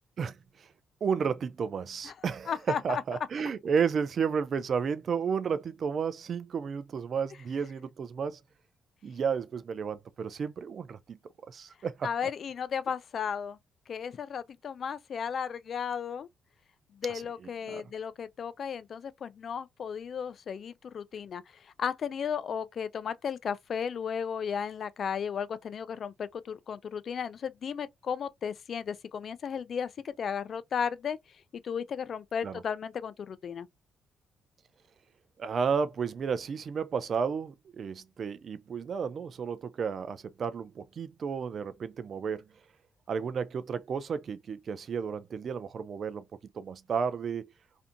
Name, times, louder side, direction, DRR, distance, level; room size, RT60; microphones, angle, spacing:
voice 1, 0.2-0.7 1.0-2.5 2.8-8.4 9.0-11.2 11.5-12.1 17.7-17.8 32.4-32.6 35.4-42.5 43.1-46.2 46.5-47.5, right 6 dB, 50° right, 0.4 m, -32 dB
voice 2, 2.5-3.0 12.0-13.6 13.9-16.3 16.9-33.7, left 7 dB, 55° left, 0.3 m, -35 dB
2.5 x 2.5 x 2.4 m
cardioid pair, 90°, 0 cm